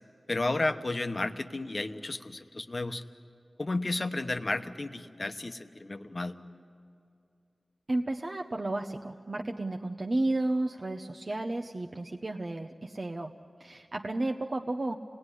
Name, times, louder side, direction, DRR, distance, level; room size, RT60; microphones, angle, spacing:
voice 1, 0.3-3.0 3.6-6.4, left 2 dB, 40° left, 8 dB, 1.0 m, -32 dB
voice 2, 7.9-13.3 13.6-15.0, right 2 dB, 45° right, 2 dB, 0.8 m, -32 dB
27.5 x 19.0 x 9.9 m, 2.5 s
wide cardioid pair, 90°, 0 cm